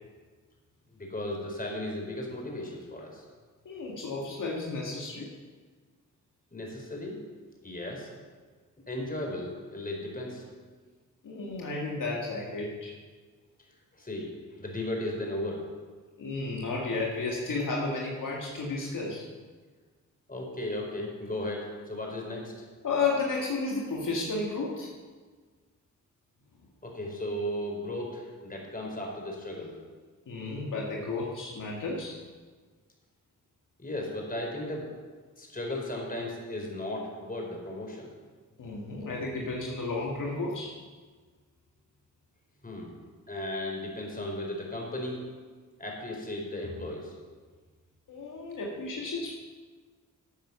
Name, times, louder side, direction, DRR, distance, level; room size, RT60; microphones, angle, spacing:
voice 1, 0.9-3.2 6.5-7.2 7.6-8.1 8.9-10.4 13.1-13.2 13.9-15.7 20.3-22.5 26.8-29.7 33.8-34.9 35.4-38.1 42.6-42.9 43.3-45.2 45.8-47.1, left 1 dB, 25° left, 0 dB, 4.5 m, -35 dB
voice 2, 3.7-5.3 11.2-12.9 16.2-19.2 22.8-24.9 30.3-32.2 38.6-40.7 48.1-49.3, left 3 dB, 70° left, -2 dB, 2.1 m, -32 dB
12.5 x 8.2 x 7.0 m, 1.5 s
cardioid pair, 60°, 33 cm